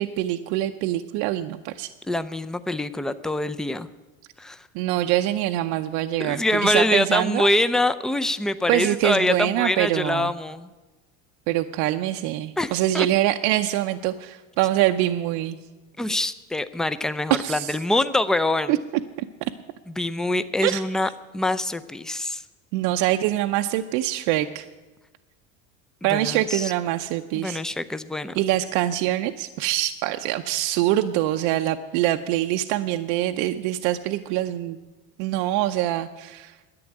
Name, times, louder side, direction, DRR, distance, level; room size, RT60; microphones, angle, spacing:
voice 1, 0.0-1.9 4.7-7.5 8.7-10.3 11.5-15.6 17.3-17.7 18.7-18.8 19.4-19.5 20.6-20.8 22.7-24.7 26.0-27.6 28.3-34.8 35.2-36.6, right 14 dB, 70° right, 6 dB, 0.7 m, -24 dB
voice 2, 2.1-3.9 4.4-4.7 6.2-10.7 12.6-13.1 16.0-18.8 20.0-22.4 26.1-26.7 27.3-28.4, left 1 dB, ahead, 12 dB, 0.4 m, -25 dB
11.0 x 8.5 x 9.8 m, 1.2 s
supercardioid pair, 105°, 35 cm